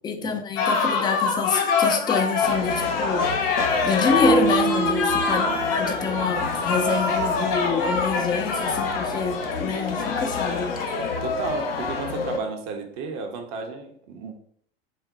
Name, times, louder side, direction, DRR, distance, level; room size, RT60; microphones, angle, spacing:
voice 1, 0.0-3.3 3.8-10.8, left 5 dB, 15° left, 0.3 m, -27 dB
sound 1, 0.6-11.2, left 4 dB, 45° left, 0.8 m, -25 dB
sound 2, 2.4-12.4, left 4 dB, 80° left, 0.5 m, -31 dB
sound 3, 4.2-6.4, right 7 dB, 70° right, 1.0 m, -26 dB
voice 2, 5.3-5.6 11.2-14.4, right 4 dB, 50° right, 0.8 m, -33 dB
4.0 x 2.1 x 3.8 m
figure-of-eight pair, 75°, 29 cm